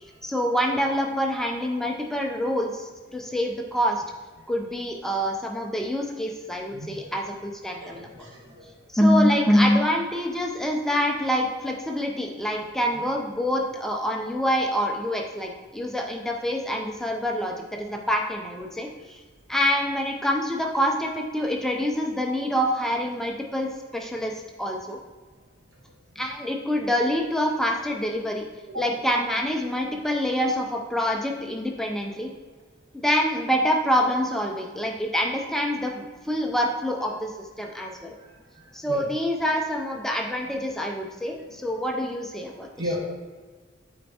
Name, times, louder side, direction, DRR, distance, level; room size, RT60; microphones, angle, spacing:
voice 1, 0.2-4.0 4.5-8.1 8.9-18.9 19.5-23.7 23.9-24.3 24.6-25.0 26.2-28.4 28.8-32.3 33.0-37.3 37.6-38.1 38.7-42.7, equal, ahead, 1 dB, 0.5 m, -26 dB
voice 2, 6.7-7.1 7.8-8.6 28.7-29.0 38.9-39.1 41.3-41.5 42.8-43.0, equal, 75° right, -3 dB, 1.7 m, -35 dB
8.5 x 4.3 x 2.8 m, 1.4 s
head